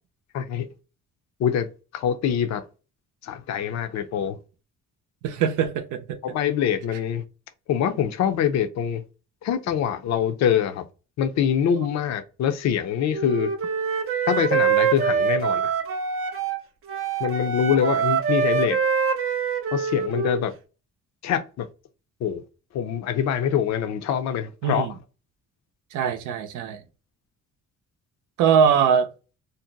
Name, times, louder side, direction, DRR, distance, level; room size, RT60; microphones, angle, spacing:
voice 1, 0.3-0.7 1.4-2.6 3.2-4.4 6.2-7.2 7.7-9.0 9.4-10.8 11.2-13.5 14.3-15.7 17.2-18.8 19.7-20.5 21.2-21.7 22.2-22.4 22.7-24.9, left 8 dB, 65° left, 0.5 m, -24 dB
voice 2, 5.2-6.2 24.6-24.9 25.9-26.8 28.4-29.1, right 7 dB, 85° right, 0.6 m, -22 dB
Wind instrument woodwind instrument, 13.1-16.6 16.9-20.4, right 6 dB, 45° right, 0.5 m, -24 dB
2.6 x 2.1 x 3.8 m
cardioid pair, 90°, 30 cm